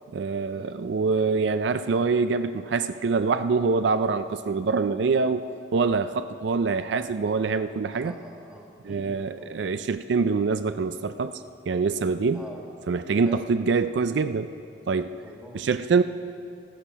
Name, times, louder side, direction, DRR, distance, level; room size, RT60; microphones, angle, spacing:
voice 1, 0.1-8.1 8.8-12.4 12.9-14.5 14.9-15.1 15.5-16.0, right 4 dB, 65° right, 11 dB, 0.4 m, -25 dB
voice 2, 7.9-9.5 12.3-12.6 13.2-13.4 15.2-15.7, equal, 5° right, 0 dB, 1.6 m, -44 dB
13.5 x 13.0 x 5.6 m, 2.5 s
head